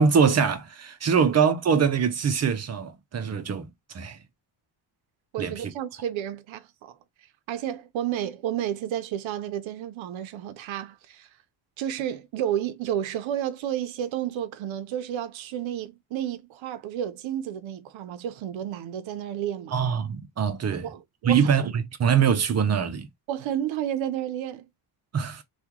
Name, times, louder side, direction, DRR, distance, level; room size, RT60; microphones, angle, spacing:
voice 1, 0.0-4.2 5.4-5.7 19.7-20.9 21.2-23.1 25.1-25.4, right 6 dB, 35° right, 0.7 m, -23 dB
voice 2, 5.3-6.9 7.5-11.3 11.8-19.7 20.8-21.7 23.3-24.7, right 10 dB, 70° right, 0.8 m, -31 dB
2.9 x 2.4 x 3.6 m
cardioid pair, 140°, 48 cm